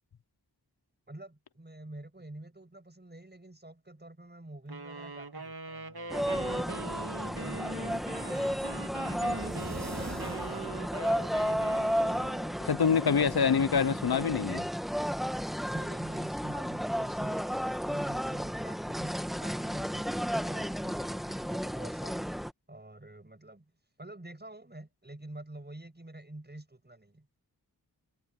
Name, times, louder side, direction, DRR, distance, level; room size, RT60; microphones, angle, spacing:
voice 1, 1.1-8.6 9.3-11.3 15.7-22.3 22.7-23.7 24.0-27.3, right 1 dB, 25° right, 6.3 m, -47 dB
sound 1, 4.7-12.6, right 3 dB, 70° right, 2.1 m, -42 dB
sound 2, 6.1-22.5, equal, ahead, 1.5 m, -33 dB
sound 3, 6.9-11.7, right 2 dB, 45° right, 6.3 m, -46 dB
voice 2, 12.6-14.7, left 6 dB, 70° left, 0.8 m, -26 dB
wide cardioid pair, 75°, 39 cm